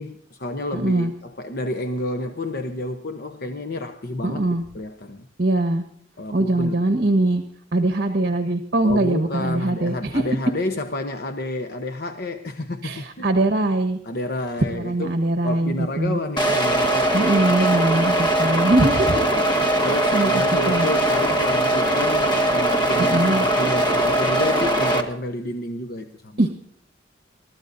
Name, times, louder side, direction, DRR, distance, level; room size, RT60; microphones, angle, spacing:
voice 1, 0.0-4.4 4.7-5.3 6.2-6.8 8.8-13.3 14.0-17.3 19.8-26.4, left 2 dB, 50° left, 0.9 m, -30 dB
voice 2, 0.7-1.1 4.2-4.6 5.4-5.8 6.3-7.4 7.7-10.2 12.8-14.0 14.7-16.2 17.1-19.9 20.1-20.9 23.0-23.4 26.4-26.6, right 2 dB, 55° right, 1.3 m, -22 dB
sound 1, 16.4-25.0, right 1 dB, 25° left, 1.6 m, -20 dB
28.5 x 13.5 x 2.7 m
head